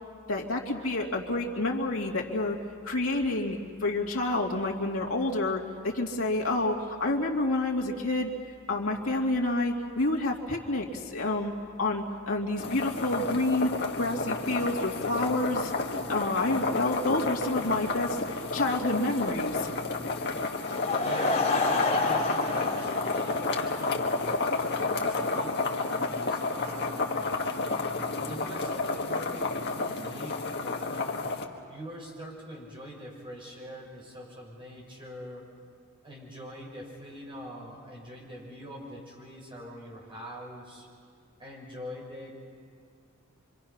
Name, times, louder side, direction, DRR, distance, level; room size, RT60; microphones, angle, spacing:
voice 1, 0.3-2.6 2.8-8.3 8.7-11.5 11.8-15.7 16.1-18.2 18.5-19.7, left 2 dB, 75° left, -1 dB, 2.6 m, -29 dB
sound 1, 12.6-31.5, left 3 dB, 50° left, 1.8 m, -31 dB
Laughter / Crowd, 20.7-24.2, left 3 dB, 35° left, 3.7 m, -29 dB
voice 2, 20.9-25.6 25.9-27.8 28.2-31.2 31.7-35.5 36.0-40.9 41.4-42.3, equal, 25° right, -3 dB, 6.2 m, -44 dB
26.0 x 25.5 x 5.9 m, 2.2 s
head